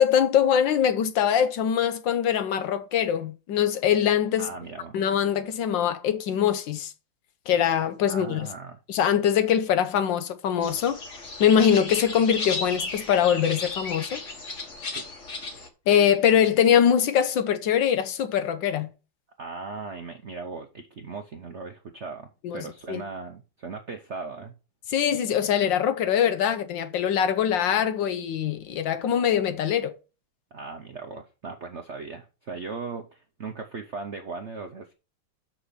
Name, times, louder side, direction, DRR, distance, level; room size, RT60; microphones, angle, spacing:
voice 1, 0.0-4.5 4.9-6.9 7.5-8.5 8.9-11.0 11.4-14.2 15.9-18.9 22.4-22.6 22.9-23.0 24.9-29.9, left 9 dB, 70° left, 1.3 m, -23 dB
voice 2, 4.4-4.9 8.1-8.8 14.9-15.1 19.4-24.5 30.5-34.9, right 4 dB, 60° right, 0.7 m, -38 dB
sound 1, 10.6-15.7, left 3 dB, 40° left, 1.5 m, -34 dB
6.8 x 6.0 x 5.7 m
omnidirectional pair, 2.3 m